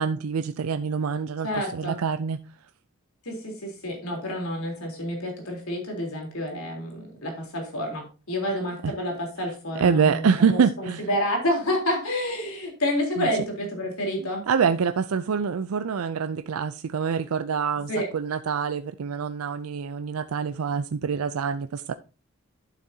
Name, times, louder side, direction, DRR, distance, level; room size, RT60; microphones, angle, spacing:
voice 1, 0.0-2.4 8.8-8.9 9.8-11.1 13.2-13.3 14.2-21.9, right 6 dB, 90° right, 0.4 m, -26 dB
voice 2, 1.4-2.0 3.3-14.4 17.9-18.1, left 1 dB, 90° left, 3.6 m, -29 dB
11.5 x 7.3 x 2.8 m
head